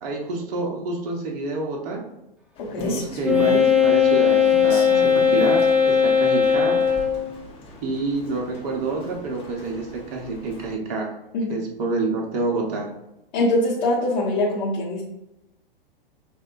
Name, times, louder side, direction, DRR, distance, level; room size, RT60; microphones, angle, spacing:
voice 1, 0.0-2.0 2.8-6.8 7.8-11.1 11.5-12.9, right 3 dB, 40° right, 0 dB, 1.0 m, -28 dB
Rain, 2.6-10.7, left 1 dB, 20° left, 0.9 m, -38 dB
Wind instrument woodwind instrument, 3.2-7.3, left 7 dB, 5° right, 0.3 m, -18 dB
voice 2, 13.3-15.0, left 1 dB, 50° left, -7 dB, 1.2 m, -23 dB
6.2 x 2.5 x 2.5 m, 0.88 s
figure-of-eight pair, 110°, 29 cm